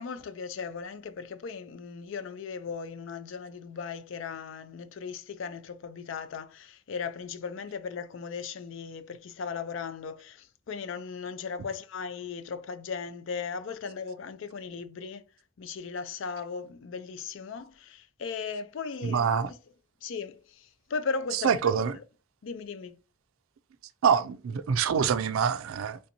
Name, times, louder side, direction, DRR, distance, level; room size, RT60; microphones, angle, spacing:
voice 1, 0.0-15.2 15.6-19.5 20.0-21.9 22.4-23.0, left 5 dB, 65° left, 0.4 m, -37 dB
voice 2, 19.0-19.5 21.4-22.0 24.0-26.0, right 7 dB, 80° right, 0.3 m, -25 dB
3.4 x 2.6 x 2.8 m
head